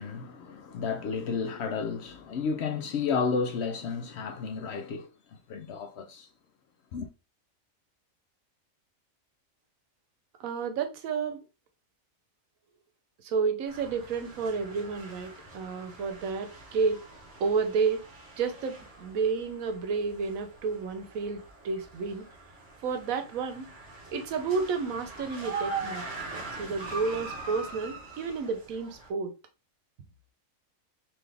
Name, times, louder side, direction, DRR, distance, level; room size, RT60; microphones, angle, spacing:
voice 1, 0.0-5.1 5.5-6.3 6.9-7.1, left 5 dB, 65° left, 0.7 m, -32 dB
voice 2, 10.4-11.4 13.2-17.0 17.4-18.0 18.4-22.2 22.8-23.7 24.1-26.0 26.3-29.3, right 5 dB, 80° right, 1.1 m, -31 dB
sound 1, 13.7-29.1, right 3 dB, 50° right, 1.3 m, -42 dB
4.0 x 2.8 x 3.3 m
omnidirectional pair, 1.4 m